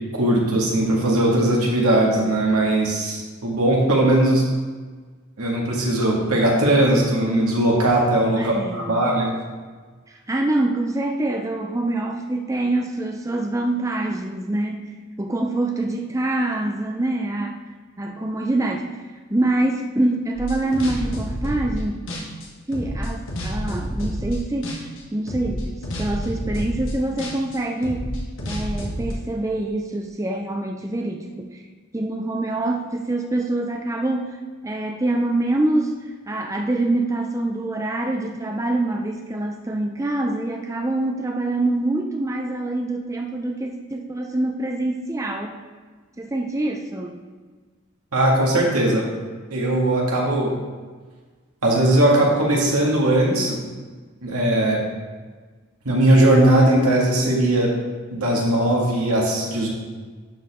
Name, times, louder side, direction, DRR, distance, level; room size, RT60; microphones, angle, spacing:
voice 1, 0.1-4.4 5.4-9.3 48.1-49.0 49.5-50.5 51.6-53.6 54.2-54.8 55.9-57.7 58.1-59.7, right 1 dB, 85° right, -2 dB, 1.9 m, -19 dB
voice 2, 8.3-9.0 10.1-14.9 15.2-17.6 18.0-18.9 19.3-22.1 22.7-24.8 25.1-28.1 28.5-31.6 31.9-34.4 34.6-45.6 46.2-47.2, right 2 dB, 15° right, 2 dB, 0.4 m, -25 dB
sound 1, 20.3-21.8 22.1-24.4 24.6-25.0 25.3-29.1, equal, 60° left, 1.5 m, -29 dB
11.0 x 4.9 x 3.6 m, 1.4 s
head